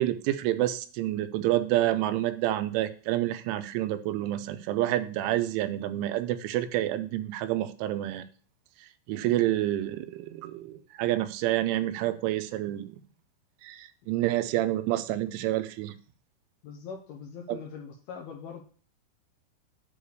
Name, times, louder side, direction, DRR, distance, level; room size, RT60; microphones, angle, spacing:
voice 1, 0.0-8.3 9.1-13.0 13.6-15.9 17.5-17.6, right 14 dB, 90° right, 11 dB, 3.1 m, -28 dB
voice 2, 16.6-18.6, left 6 dB, 75° left, 0 dB, 2.4 m, -42 dB
9.6 x 3.4 x 6.5 m, 0.42 s
omnidirectional pair, 5.4 m